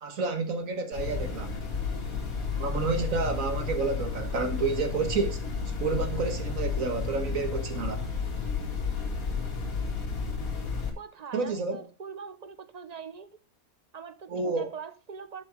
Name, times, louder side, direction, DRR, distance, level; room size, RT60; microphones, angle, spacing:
voice 1, 0.0-1.6 2.6-5.4 5.8-8.1 11.3-11.8 14.3-14.7, right 4 dB, 65° right, 1.8 m, -30 dB
sound 1, 0.9-10.9, left 5 dB, 65° left, 2.6 m, -32 dB
voice 2, 11.0-13.3 13.9-15.4, right 6 dB, 35° right, 0.7 m, -42 dB
11.5 x 5.7 x 5.0 m
omnidirectional pair, 1.6 m